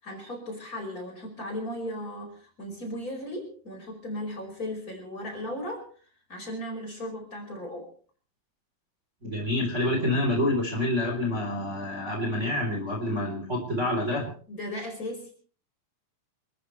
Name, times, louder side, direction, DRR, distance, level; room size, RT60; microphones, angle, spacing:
voice 1, 0.0-5.9 6.3-7.9 14.5-15.3, left 1 dB, 25° left, 2 dB, 5.4 m, -36 dB
voice 2, 9.2-14.3, left 1 dB, 20° right, 1 dB, 3.9 m, -27 dB
28.5 x 14.0 x 3.3 m, 0.43 s
omnidirectional pair, 4.0 m